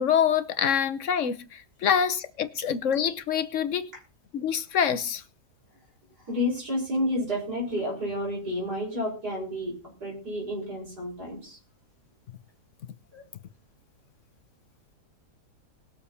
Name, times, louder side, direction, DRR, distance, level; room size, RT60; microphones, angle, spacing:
voice 1, 0.0-3.9 4.3-5.2, left 8 dB, 55° left, 1.2 m, -26 dB
voice 2, 6.3-9.7 10.0-11.6 13.1-13.2, left 1 dB, 90° right, 6.2 m, -30 dB
20.5 x 6.9 x 4.2 m
omnidirectional pair, 1.7 m